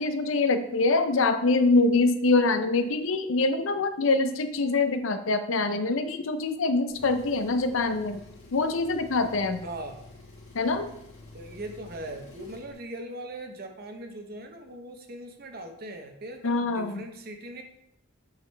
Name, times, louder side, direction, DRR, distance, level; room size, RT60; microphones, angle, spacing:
voice 1, 0.0-8.2 8.5-9.7 10.5-10.9 16.4-17.1, left 3 dB, 70° left, 9 dB, 0.6 m, -24 dB
Engine, 6.9-12.7, left 2 dB, 45° left, 2.4 m, -49 dB
voice 2, 9.6-10.0 11.3-17.6, right 1 dB, 45° right, 5 dB, 0.8 m, -40 dB
8.0 x 5.0 x 3.3 m, 0.77 s
head